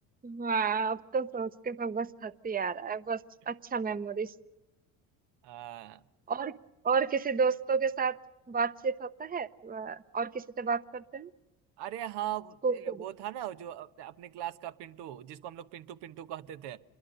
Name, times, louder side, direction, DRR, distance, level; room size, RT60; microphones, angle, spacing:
voice 1, 0.2-3.2 3.5-4.3 6.3-6.6 6.8-8.2 8.5-11.3 12.6-13.0, right 5 dB, 20° right, 16 dB, 0.8 m, -31 dB
voice 2, 5.4-6.0 11.8-16.8, right 12 dB, 75° right, 12 dB, 1.1 m, -40 dB
26.5 x 22.0 x 6.7 m, 1.0 s
supercardioid pair, 65°, 42 cm